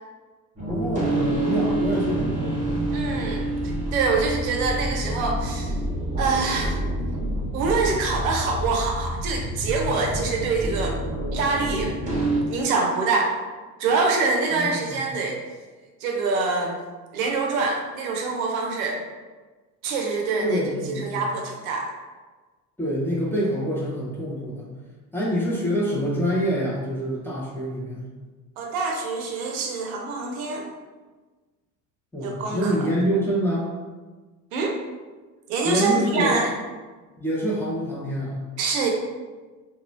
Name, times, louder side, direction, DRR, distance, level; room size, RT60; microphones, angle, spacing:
voice 1, 0.6-2.6 14.5-15.0 20.4-21.2 22.8-24.7 25.1-28.1 32.1-33.7 35.6-36.4 37.2-38.4, equal, 5° left, -7 dB, 0.6 m, -26 dB
sound 1, 0.6-12.4, right 1 dB, 15° right, 1.0 m, -27 dB
voice 2, 2.9-3.5 3.9-5.8 6.2-6.8 7.5-11.0 11.3-12.2 12.5-13.4 13.8-15.4 16.0-16.8 17.1-19.0 19.8-20.6 20.9-21.9 28.6-30.7 32.2-32.7 34.5-34.8 35.5-36.5 38.6-38.9, right 4 dB, 60° right, 1 dB, 0.6 m, -25 dB
2.9 x 2.3 x 2.6 m, 1.3 s
figure-of-eight pair, 60°, 49 cm